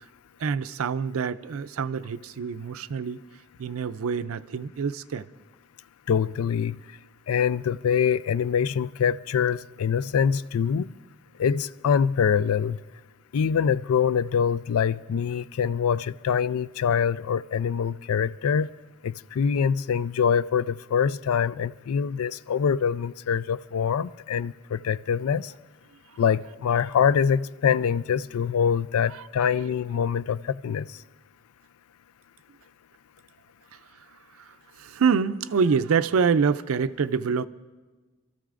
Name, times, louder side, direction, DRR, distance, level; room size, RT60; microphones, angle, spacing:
voice 1, 0.4-3.2 3.6-5.3 29.1-29.7 34.4-37.5, right 6 dB, 75° right, 0.4 m, -26 dB
voice 2, 6.1-6.8 7.3-10.9 11.4-12.8 13.3-18.7 19.0-25.5 26.2-30.8, left 7 dB, 85° left, 0.4 m, -24 dB
27.5 x 13.5 x 2.5 m
head